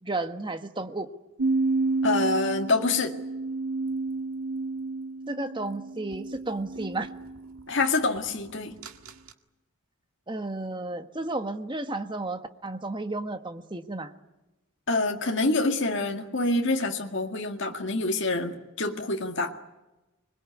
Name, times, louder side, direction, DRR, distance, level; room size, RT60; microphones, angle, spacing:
voice 1, 0.0-1.1 5.3-7.1 10.3-14.1, right 2 dB, 20° right, 8 dB, 1.4 m, -33 dB
sound 1, 1.4-7.7 8.8-9.1, right 3 dB, 85° right, 1.9 m, -30 dB
voice 2, 2.0-3.2 7.7-8.8 14.9-19.5, left 2 dB, 55° left, 3 dB, 2.0 m, -26 dB
25.5 x 22.0 x 9.5 m, 1.0 s
head